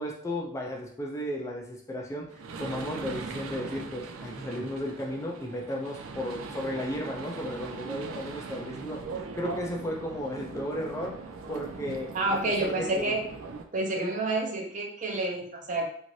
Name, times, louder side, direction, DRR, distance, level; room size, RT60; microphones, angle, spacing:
voice 1, 0.0-11.2 11.5-13.1 14.0-14.1, equal, 15° left, -1 dB, 0.3 m, -34 dB
sound 1, 2.3-13.6, right 4 dB, 85° right, 0.4 m, -40 dB
voice 2, 12.1-13.2 13.7-15.9, right 2 dB, 40° right, 1 dB, 0.6 m, -29 dB
2.6 x 2.4 x 3.0 m, 0.62 s
head